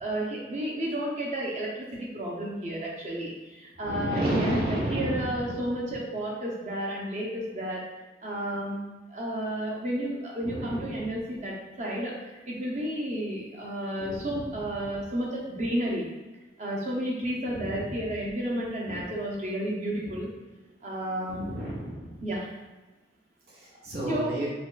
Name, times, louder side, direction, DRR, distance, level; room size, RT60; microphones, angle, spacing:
voice 1, 0.0-7.8 8.2-16.0 16.6-20.3 20.8-21.5 22.2-22.5 24.0-24.3, right 1 dB, 40° right, -3 dB, 0.6 m, -32 dB
voice 2, 3.8-5.6 10.4-10.9 14.0-14.4 17.5-17.9 18.9-19.0 21.3-22.3 23.5-24.5, right 1 dB, 55° right, -6 dB, 1.1 m, -32 dB
5.0 x 2.2 x 2.4 m, 1.2 s
head